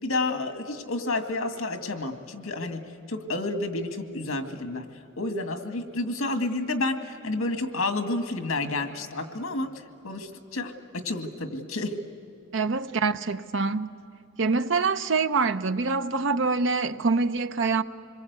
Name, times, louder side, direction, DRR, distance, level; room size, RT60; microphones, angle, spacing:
voice 1, 0.0-4.9 5.2-9.7 10.0-12.0, left 2 dB, 85° left, 2.1 m, -30 dB
voice 2, 12.5-13.9 14.4-17.8, right 4 dB, 60° right, 0.8 m, -25 dB
26.5 x 22.5 x 8.2 m
head